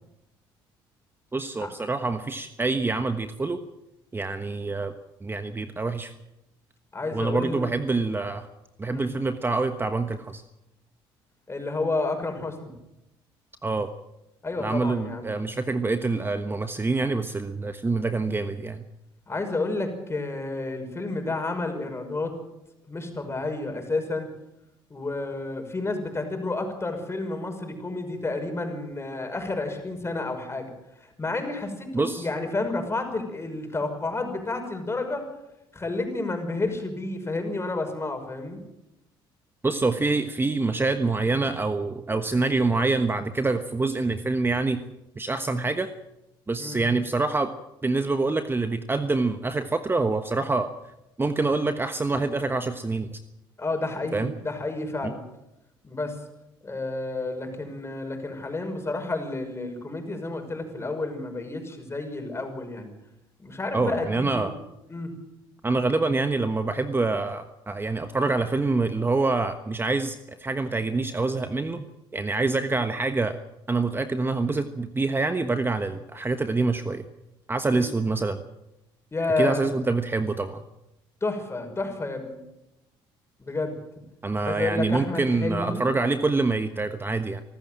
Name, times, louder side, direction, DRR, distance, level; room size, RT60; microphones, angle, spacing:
voice 1, 1.3-3.6 4.1-4.9 5.2-6.1 7.1-8.5 8.8-10.4 13.6-13.9 14.6-18.8 31.9-32.3 39.6-44.8 45.2-45.9 46.5-47.5 47.8-50.7 51.2-53.2 54.1-54.3 63.7-64.5 65.6-71.9 72.1-73.4 73.7-77.0 77.5-78.4 79.4-80.6 84.2-87.4, right 3 dB, 20° right, 9 dB, 1.2 m, -26 dB
voice 2, 6.9-7.7 8.9-9.1 11.5-12.7 14.4-15.4 19.3-22.3 22.9-24.3 24.9-30.7 31.0-35.3 35.7-38.6 46.6-46.8 53.6-55.2 55.8-56.2 56.6-62.9 63.4-64.5 64.9-65.1 77.7-77.9 79.1-79.7 81.2-82.4 83.4-83.8 84.4-85.8, left 2 dB, 25° left, 5 dB, 5.8 m, -30 dB
24.5 x 13.5 x 7.7 m, 0.91 s
supercardioid pair, 75°, 11 cm